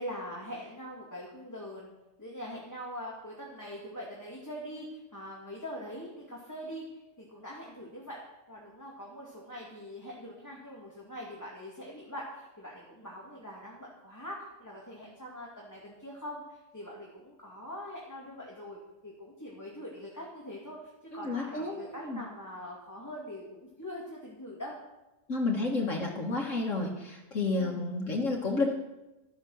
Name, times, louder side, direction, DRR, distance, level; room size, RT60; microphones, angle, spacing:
voice 1, 0.0-1.9 2.2-8.2 8.5-18.8 19.0-24.8 27.5-27.8, equal, 15° left, -4 dB, 2.6 m, -43 dB
voice 2, 21.1-22.2 25.3-28.7, left 3 dB, 85° left, 0 dB, 2.2 m, -31 dB
13.5 x 10.5 x 6.5 m, 0.99 s
omnidirectional pair, 1.3 m